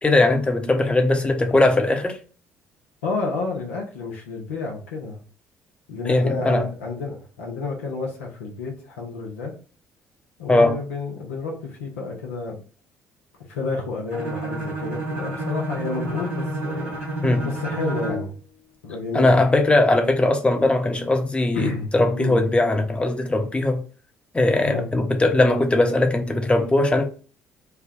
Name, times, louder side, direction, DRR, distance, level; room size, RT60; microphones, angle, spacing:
voice 1, 0.0-2.2 6.0-6.7 10.5-10.8 17.2-17.5 19.1-23.8 24.3-27.0, left 2 dB, 15° left, 0.9 m, -19 dB
voice 2, 3.0-5.2 5.9-9.5 10.4-12.6 13.5-16.9 17.4-18.3 18.8-19.4 21.5-22.4 24.6-24.9, left 4 dB, 85° left, 0.8 m, -30 dB
Bowed string instrument, 14.1-18.3, right 2 dB, 90° right, 1.2 m, -29 dB
3.4 x 2.2 x 3.6 m
hypercardioid pair, 50°, 7 cm